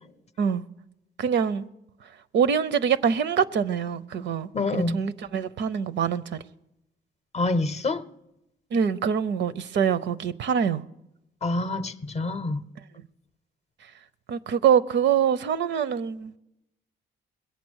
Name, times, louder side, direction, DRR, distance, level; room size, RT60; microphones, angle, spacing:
voice 1, 1.2-1.7 2.3-6.4 8.7-10.8 14.3-16.4, right 7 dB, 65° right, 0.6 m, -24 dB
voice 2, 4.5-5.0 7.3-8.0 11.4-12.6, left 2 dB, 35° left, 0.7 m, -26 dB
21.0 x 8.3 x 6.3 m
cardioid pair, 90°, 20 cm